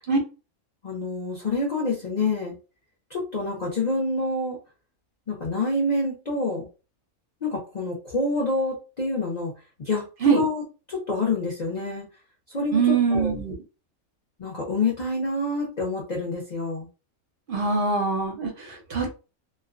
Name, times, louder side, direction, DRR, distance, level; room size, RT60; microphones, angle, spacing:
voice 1, 0.8-2.6 3.1-4.6 5.3-6.7 7.4-9.5 9.8-10.6 10.9-12.0 12.5-13.3 14.4-16.9, left 2 dB, 45° left, -2 dB, 0.5 m, -27 dB
voice 2, 12.7-13.5 17.5-19.2, right 5 dB, 55° right, 1 dB, 0.6 m, -23 dB
2.3 x 2.2 x 2.4 m, 0.32 s
omnidirectional pair, 1.5 m